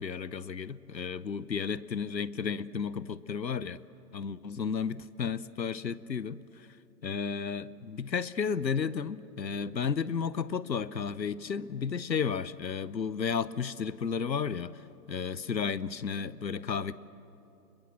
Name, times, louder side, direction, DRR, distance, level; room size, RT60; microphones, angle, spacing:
voice 1, 0.0-3.8 4.1-6.7 7.0-16.9, left 6 dB, 90° left, 18 dB, 0.8 m, -33 dB
26.0 x 22.0 x 7.5 m, 3.0 s
figure-of-eight pair, 130°, 50 cm